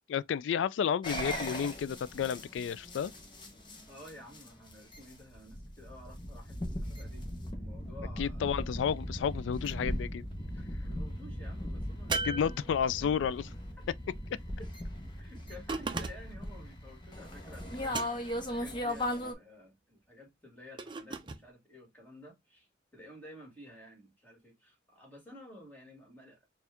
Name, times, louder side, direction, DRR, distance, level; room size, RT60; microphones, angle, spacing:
voice 1, 0.1-3.1 8.2-10.2 12.2-13.4, left 7 dB, 85° left, 0.3 m, -31 dB
sound 1, 1.0-19.3, left 1 dB, 25° left, 0.9 m, -39 dB
voice 2, 3.9-8.5 10.5-13.1 13.4-13.5 14.6-14.7 15.2-22.7 22.9-26.5, equal, 10° left, 1.9 m, -52 dB
sound 2, 12.1-13.2 15.7-16.5 17.9-18.5 20.8-21.4, right 4 dB, 25° right, 0.5 m, -37 dB
4.3 x 2.4 x 3.4 m
head